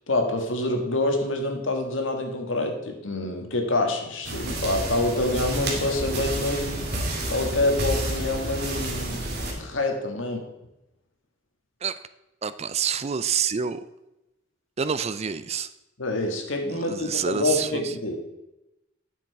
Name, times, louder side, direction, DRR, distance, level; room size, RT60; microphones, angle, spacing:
voice 1, 0.1-6.9 7.3-9.3 9.5-10.5 16.0-18.2, left 2 dB, 80° left, 3 dB, 1.8 m, -26 dB
sound 1, 4.2-9.5, right 1 dB, 55° right, 2.3 m, -30 dB
voice 2, 12.4-13.8 14.8-15.7 16.7-17.9, right 7 dB, 35° right, 14 dB, 0.4 m, -27 dB
9.6 x 7.3 x 4.7 m, 0.94 s
head